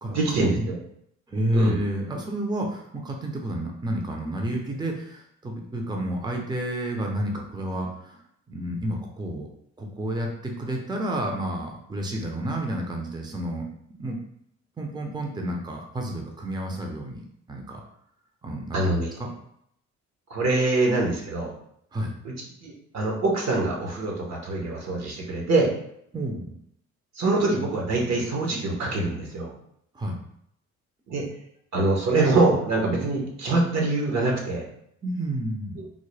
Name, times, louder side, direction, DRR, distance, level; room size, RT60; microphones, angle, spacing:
voice 1, 0.0-0.8 1.5-1.8 18.7-19.1 20.3-21.5 22.2-25.7 27.1-29.5 31.1-31.2 31.7-34.7 35.8-35.9, right 2 dB, 60° right, -1 dB, 1.1 m, -24 dB
voice 2, 1.3-8.2 8.5-9.5 9.8-13.6 14.0-14.2 14.8-17.8 18.4-18.8 19.2-19.3 21.9-22.1 26.1-26.5 29.9-30.1 35.0-35.8, right 1 dB, 15° right, 1 dB, 0.6 m, -30 dB
3.7 x 2.1 x 3.2 m, 0.72 s
cardioid pair, 90°, 30 cm